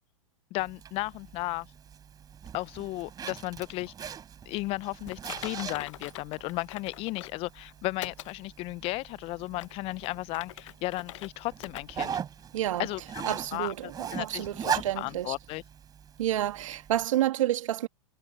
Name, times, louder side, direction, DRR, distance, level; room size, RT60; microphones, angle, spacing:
voice 1, 0.5-1.7 2.5-4.2 4.5-12.2 12.8-15.6, left 20 dB, 35° left, 0.5 m, -35 dB
Zipper (clothing), 0.6-17.1, right 8 dB, 20° right, 3.9 m, -40 dB
Typing, 5.1-7.4 8.0-8.3 8.8-8.9 9.5-11.3 11.6-11.8 12.2-12.3 12.9-13.0, left 15 dB, 65° left, 0.9 m, -43 dB
voice 2, 12.5-12.9 13.3-15.3 16.2-17.9, right 13 dB, 70° right, 2.0 m, -29 dB
hypercardioid pair, 120°, 17 cm